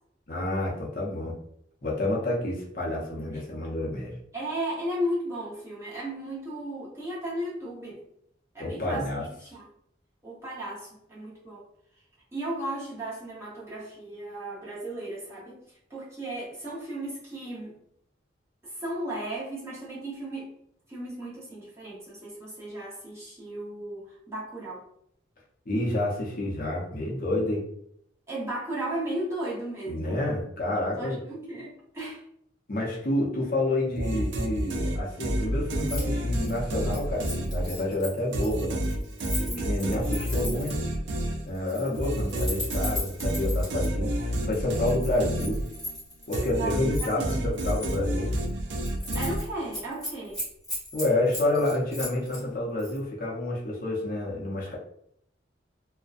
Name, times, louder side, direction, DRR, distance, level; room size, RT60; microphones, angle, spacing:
voice 1, 0.3-1.4 1.8-4.1 8.6-9.3 25.7-27.6 29.9-31.2 32.7-38.8 39.4-40.8 41.4-44.1 44.4-45.6 46.3-48.4 50.9-54.8, left 1 dB, 50° left, -4 dB, 0.6 m, -29 dB
voice 2, 4.3-8.0 8.5-9.7 10.2-11.6 12.3-15.6 15.9-17.8 18.6-20.5 20.9-24.9 28.3-30.2 31.0-32.2 39.5-39.9 46.5-47.9 49.1-50.4, right 1 dB, 15° right, -7 dB, 0.7 m, -35 dB
sound 1, 34.0-37.9 38.3-46.0 46.3-49.8, equal, 70° right, 0.4 m, -29 dB
Keys jangling, 35.8-36.1 36.3-40.9 41.5-43.9 44.5-46.5 46.9-48.0 48.4-48.5 48.8-49.4 49.7-52.4 52.8-53.0, left 1 dB, 5° left, 1.0 m, -37 dB
2.5 x 2.1 x 2.3 m, 0.70 s
head